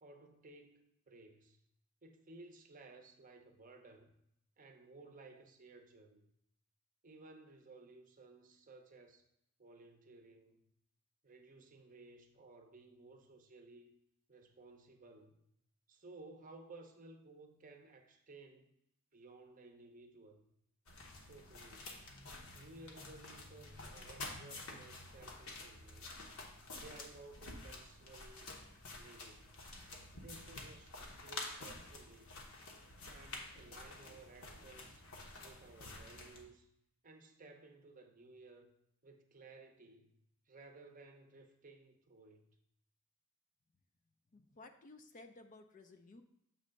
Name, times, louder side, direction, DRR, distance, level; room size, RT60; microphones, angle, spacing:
voice 1, 0.0-1.6 2.0-4.1 4.6-6.3 7.0-9.3 9.6-10.6 11.2-13.9 14.3-15.4 15.9-18.8 19.1-20.4 21.2-22.1 22.5-26.1 26.8-28.5 28.9-29.6 30.1-32.4 33.1-35.1 35.4-36.7 37.0-38.7 39.0-40.2 40.5-42.5, right 3 dB, 35° right, 0.6 m, -57 dB
sound 1, 20.9-36.4, left 2 dB, 70° left, 1.1 m, -50 dB
voice 2, 44.3-46.2, left 2 dB, 35° left, 0.4 m, -56 dB
7.4 x 3.2 x 5.1 m
head